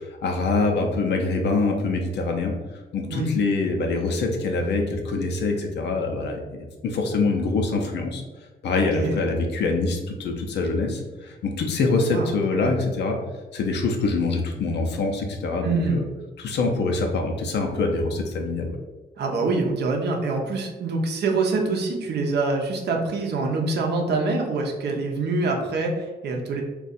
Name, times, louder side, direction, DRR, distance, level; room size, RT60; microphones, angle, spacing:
voice 1, 0.2-2.5 2.9-8.2 8.6-13.2 13.5-16.0 16.4-18.8, left 3 dB, 75° left, 2 dB, 0.6 m, -24 dB
voice 2, 15.6-16.0 19.2-26.6, right 3 dB, 75° right, 2 dB, 0.6 m, -25 dB
2.5 x 2.3 x 4.0 m, 1.2 s
cardioid pair, 90°, 18 cm